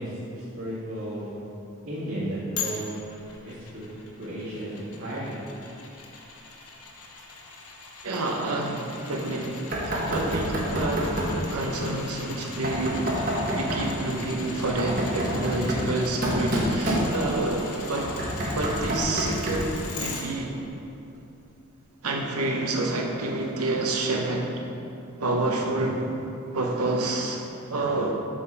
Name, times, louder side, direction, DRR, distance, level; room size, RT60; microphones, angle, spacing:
voice 1, 0.0-1.4 1.9-2.9 3.4-3.9 4.2-5.4, right 1 dB, 65° right, -12 dB, 1.8 m, -34 dB
sound 1, 2.6-20.2 20.7-20.8, left 4 dB, 85° left, 0.9 m, -41 dB
voice 2, 8.0-11.2 11.5-13.1 13.5-18.2 18.5-20.6 22.0-24.6 25.2-26.0 26.5-28.1, right 2 dB, 85° right, 0 dB, 0.9 m, -28 dB
Knock, 9.7-11.4 12.6-13.9 14.6-17.5 18.0-19.8, equal, 40° right, 1.1 m, -28 dB
7.2 x 6.9 x 3.5 m, 2.8 s
head